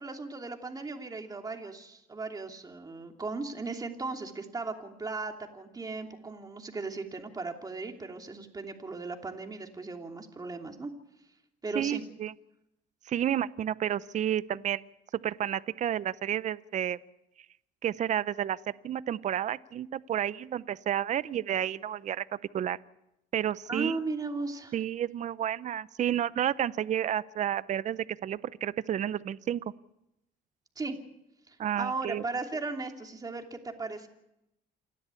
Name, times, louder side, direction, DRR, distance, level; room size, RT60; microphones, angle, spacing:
voice 1, 0.0-10.9 11.6-12.0 23.7-24.7 30.8-31.0 31.5-34.1, right 3 dB, 20° right, 3 dB, 2.9 m, -37 dB
voice 2, 11.7-12.3 13.1-14.8 15.2-17.0 17.8-18.6 18.8-22.2 22.5-22.8 23.3-24.0 24.7-29.6 31.6-32.2, right 10 dB, 45° right, 17 dB, 0.7 m, -31 dB
28.0 x 12.5 x 8.4 m, 0.86 s
cardioid pair, 110°, 17 cm